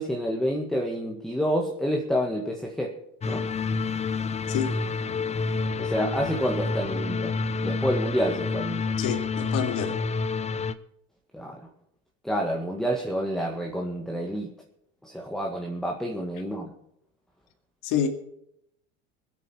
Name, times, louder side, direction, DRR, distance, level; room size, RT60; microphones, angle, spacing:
voice 1, 0.0-2.9 3.3-3.5 5.8-7.4 7.6-8.9 11.3-11.6 12.2-14.5 15.0-16.7, equal, ahead, 1.8 m, -28 dB
sound 1, 3.2-10.7, left 4 dB, 20° left, 0.7 m, -29 dB
voice 2, 4.5-4.8 9.0-10.0 17.8-18.1, left 8 dB, 60° left, 2.3 m, -27 dB
22.0 x 8.8 x 4.6 m
hypercardioid pair, 95°, 37 cm